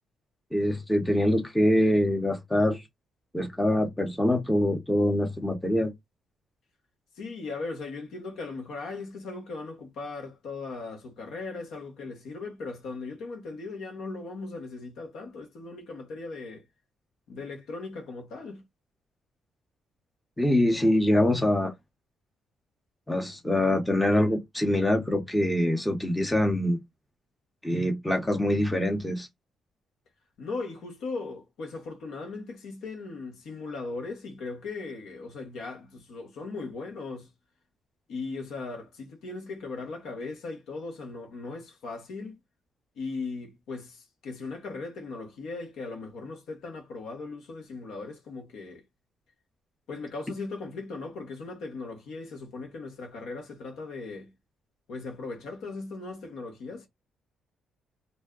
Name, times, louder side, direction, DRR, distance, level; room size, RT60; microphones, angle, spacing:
voice 1, 0.5-2.8 3.3-5.9 20.4-21.7 23.1-26.8 27.6-29.3, left 1 dB, 10° left, 0.8 m, -24 dB
voice 2, 7.2-16.7 17.3-18.6 30.4-37.3 38.1-42.4 43.0-48.8 49.9-54.3 54.9-56.9, left 3 dB, 80° left, 1.1 m, -38 dB
2.6 x 2.2 x 3.6 m
cardioid pair, 90°, 0 cm